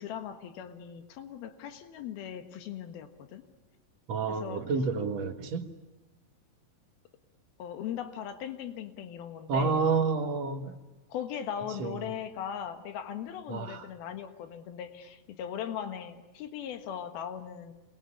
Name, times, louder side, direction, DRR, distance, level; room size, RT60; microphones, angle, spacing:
voice 1, 0.0-3.4 4.3-4.6 7.6-9.8 11.1-17.7, left 9 dB, 80° left, 8 dB, 3.4 m, -39 dB
voice 2, 4.1-5.7 9.5-10.8 11.8-12.1 13.5-13.9, right 4 dB, 55° right, 6 dB, 2.3 m, -29 dB
27.5 x 21.0 x 9.9 m, 1.1 s
omnidirectional pair, 4.3 m